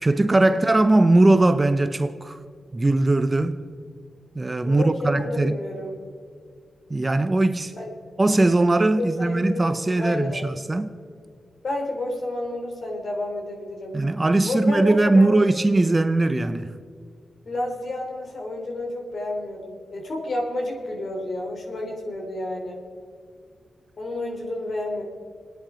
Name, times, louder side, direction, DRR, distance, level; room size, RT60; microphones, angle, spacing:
voice 1, 0.0-2.4 2.7-3.6 4.3-5.6 6.9-7.7 8.2-10.9 13.9-16.8, right 2 dB, 25° right, 0.8 m, -20 dB
voice 2, 4.6-5.9 7.7-7.9 9.0-10.5 11.6-14.0 14.4-15.4 17.4-22.8 24.0-25.0, left 1 dB, 55° left, 3.7 m, -30 dB
26.5 x 10.0 x 5.2 m
cardioid pair, 85°, 0 cm